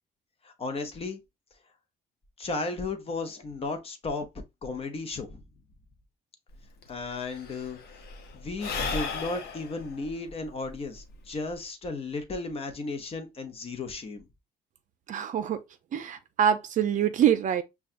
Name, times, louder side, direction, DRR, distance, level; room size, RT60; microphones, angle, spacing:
voice 1, 0.4-1.2 2.4-4.3 4.6-5.4 6.9-7.8 8.3-14.3, left 3 dB, 35° left, 0.8 m, -34 dB
Sigh / Breathing, 6.5-6.6 6.8-11.6, left 4 dB, 70° left, 0.9 m, -36 dB
voice 2, 15.1-15.6 15.9-17.6, right 9 dB, 50° right, 0.5 m, -25 dB
5.5 x 2.3 x 2.5 m
cardioid pair, 110°, 17 cm